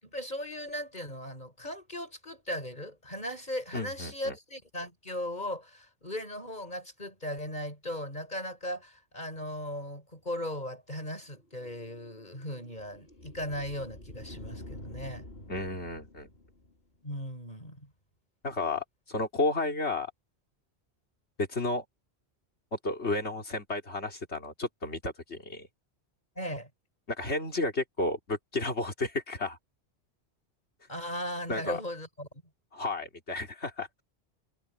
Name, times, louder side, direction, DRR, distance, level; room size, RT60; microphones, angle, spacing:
voice 1, 0.0-15.2 17.0-17.9 26.4-26.7 30.9-32.3, left 1 dB, 45° left, 8.4 m, -37 dB
voice 2, 3.7-4.3 15.5-16.3 18.4-20.1 21.4-21.8 22.7-25.7 27.1-29.6 31.5-31.8 32.7-33.9, left 2 dB, 85° left, 3.5 m, -32 dB
sound 1, 11.4-17.0, left 1 dB, 65° left, 3.4 m, -48 dB
omnidirectional pair, 1.1 m